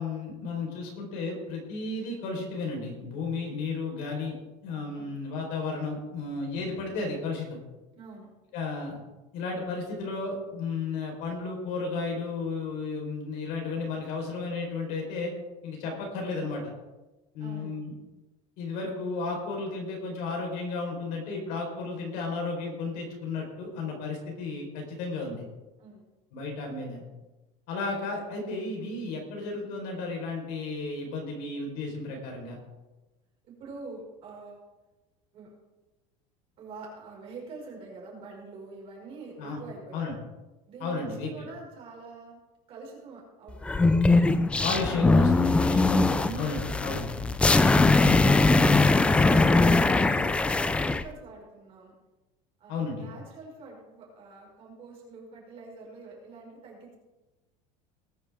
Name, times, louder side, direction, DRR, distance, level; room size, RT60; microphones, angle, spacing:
voice 1, 0.0-4.3 4.6-7.6 8.5-9.0 9.3-15.3 15.6-16.6 17.3-17.9 18.6-25.4 26.3-27.0 27.7-32.6 39.4-39.6 39.9-40.1 40.8-41.3 44.6-47.3 52.7-53.1, left 3 dB, 55° left, 1 dB, 4.3 m, -33 dB
voice 2, 8.0-8.3 17.4-17.8 25.8-26.1 33.5-34.6 35.3-35.5 36.6-40.1 40.7-42.4 42.7-43.9 46.7-47.1 49.3-51.9 52.6-56.9, right 3 dB, 35° right, -2 dB, 5.3 m, -45 dB
sound 1, 43.6-51.0, left 3 dB, 5° left, 0.3 m, -21 dB
20.0 x 10.0 x 3.6 m, 1.1 s
cardioid pair, 170°, 17 cm